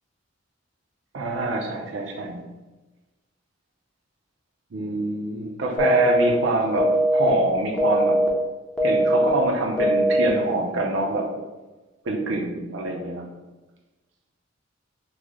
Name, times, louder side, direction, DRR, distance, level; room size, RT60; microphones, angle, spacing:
voice 1, 1.1-2.4 4.7-8.2 8.8-11.3 12.0-13.3, right 2 dB, 70° right, 1 dB, 0.5 m, -25 dB
sound 1, 5.8-6.3 6.8-7.3 7.8-8.3 8.8-9.3 9.8-10.3, right 1 dB, 5° left, 0.5 m, -20 dB
3.1 x 2.0 x 3.6 m, 1.2 s
head